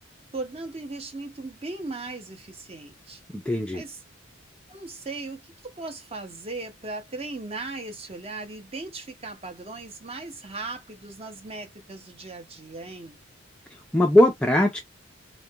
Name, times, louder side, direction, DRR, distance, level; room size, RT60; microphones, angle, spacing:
voice 1, 0.3-3.2 3.7-4.0 4.7-13.2, right 3 dB, 30° right, 0.7 m, -37 dB
voice 2, 3.3-3.8 13.9-14.8, left 1 dB, 5° left, 0.4 m, -20 dB
2.4 x 2.1 x 2.7 m
head